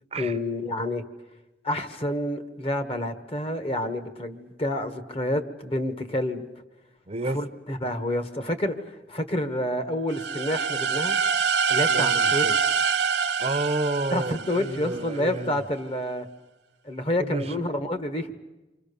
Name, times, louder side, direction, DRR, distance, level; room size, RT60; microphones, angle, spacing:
voice 1, 0.2-1.0 1.6-6.5 7.3-8.7 9.1-11.2 11.7-12.4 14.1-16.2 16.8-18.3, left 1 dB, 35° left, 8 dB, 1.6 m, -28 dB
voice 2, 7.1-7.4 11.9-12.5 13.4-15.6 17.2-17.5, right 2 dB, 35° right, 10 dB, 0.9 m, -30 dB
sound 1, 10.1-15.0, right 6 dB, 75° right, 0.9 m, -25 dB
29.0 x 25.0 x 6.9 m, 1.0 s
head